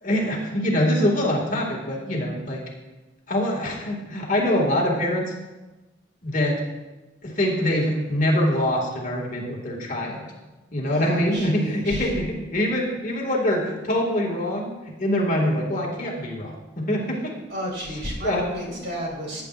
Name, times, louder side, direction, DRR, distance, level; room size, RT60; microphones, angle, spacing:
voice 1, 0.0-2.6 3.3-5.3 6.2-6.6 7.2-10.3 10.7-14.7 15.0-17.3 17.9-18.0 18.2-18.4 18.7-18.8, left 1 dB, 45° left, -1 dB, 2.1 m, -24 dB
voice 2, 10.9-12.1 17.5-19.4, equal, 60° right, -3 dB, 3.4 m, -32 dB
18.0 x 9.3 x 2.5 m, 1.1 s
head